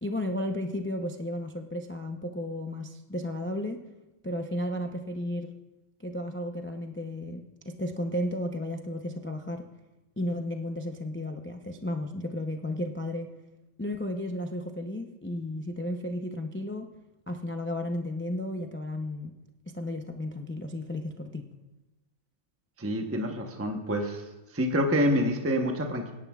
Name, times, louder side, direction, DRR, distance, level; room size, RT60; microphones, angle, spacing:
voice 1, 0.0-3.8 4.2-5.6 6.0-9.6 10.2-13.3 13.8-16.9 17.3-19.3 19.7-21.5, left 1 dB, 15° left, 4 dB, 0.4 m, -33 dB
voice 2, 22.8-24.2 24.5-26.1, equal, 10° right, 3 dB, 0.8 m, -27 dB
22.5 x 10.5 x 2.4 m, 1.0 s
omnidirectional pair, 1.3 m